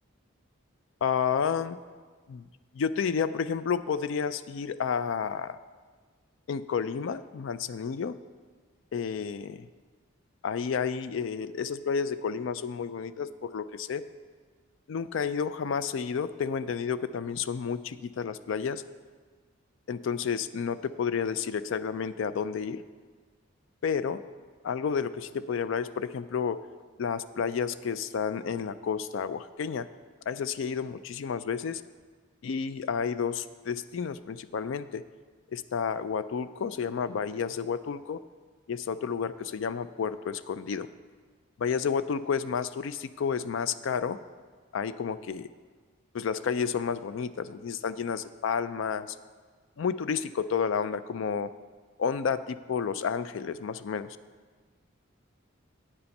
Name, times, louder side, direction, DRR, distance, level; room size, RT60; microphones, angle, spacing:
voice 1, 1.0-1.8 2.3-2.5 2.7-5.6 6.5-8.2 8.9-9.7 10.4-14.0 14.9-18.8 19.9-22.8 23.8-24.2 24.6-26.6 27.0-29.9 30.3-31.8 32.4-35.0 35.5-38.2 38.7-40.9 41.6-44.2 44.7-45.5 46.1-49.2 49.8-51.5 52.0-54.2, left 6 dB, 65° left, 14 dB, 0.4 m, -31 dB
8.8 x 7.1 x 5.3 m, 1.5 s
head